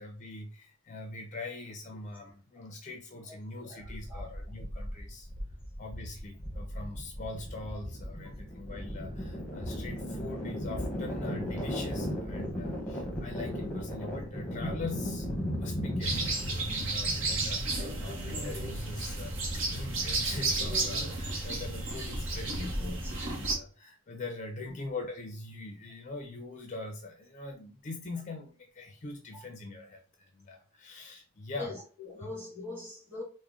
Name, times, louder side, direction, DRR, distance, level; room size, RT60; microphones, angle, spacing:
voice 1, 0.0-5.3 5.8-31.8 32.2-32.3, left 2 dB, 35° left, 0.4 m, -42 dB
voice 2, 3.5-4.3 22.6-23.1 31.6-33.2, left 2 dB, 10° right, 1.6 m, -42 dB
sound 1, 3.8-20.8, equal, 10° left, 0.8 m, -37 dB
sound 2, 16.0-23.5, right 2 dB, 60° right, 0.9 m, -33 dB
3.6 x 2.1 x 3.6 m
head